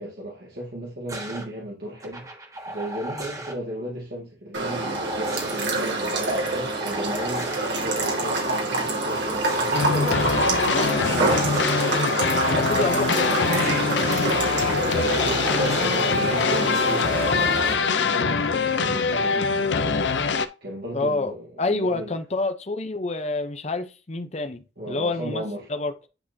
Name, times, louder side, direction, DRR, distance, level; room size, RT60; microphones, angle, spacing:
voice 1, 0.0-2.3 2.7-10.4 10.9-11.5 14.8-15.2 15.5-20.0 20.6-22.1 24.8-25.7, equal, 60° right, 1.9 m, -35 dB
sound 1, 1.1-1.5 2.0-3.6 4.6-5.7 6.2-7.7 9.0-9.8 10.4-11.9 13.0-14.0 14.5-16.1 17.4-17.8, right 1 dB, 20° right, 1.3 m, -36 dB
sound 2, 4.5-17.7, right 2 dB, 75° right, 2.4 m, -26 dB
Vintage Montage music, 9.7-20.5, left 5 dB, 80° left, 0.6 m, -23 dB
voice 2, 12.4-14.0 20.9-25.4 25.7-25.9, left 3 dB, 35° left, 0.7 m, -28 dB
10.0 x 4.1 x 2.7 m
head